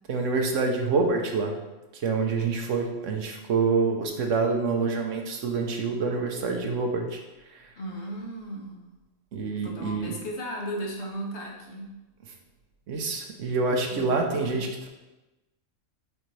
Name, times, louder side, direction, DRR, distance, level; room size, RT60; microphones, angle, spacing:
voice 1, 0.1-1.6 1.9-7.2 7.5-7.6 9.3-10.1 12.9-14.9, right 4 dB, 75° right, 3 dB, 1.1 m, -26 dB
voice 2, 7.8-8.9 9.5-11.9 13.9-14.6, equal, 60° left, -1 dB, 1.3 m, -36 dB
7.9 x 3.9 x 3.2 m, 1.1 s
omnidirectional pair, 1.3 m